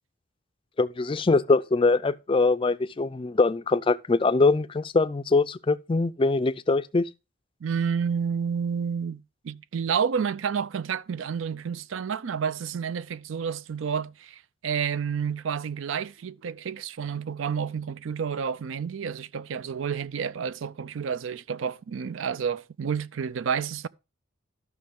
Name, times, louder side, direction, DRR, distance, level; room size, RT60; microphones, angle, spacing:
voice 1, 0.8-7.1, left 3 dB, 25° left, 0.4 m, -23 dB
voice 2, 7.6-23.9, right 7 dB, 75° right, 0.4 m, -30 dB
12.5 x 6.0 x 3.6 m
head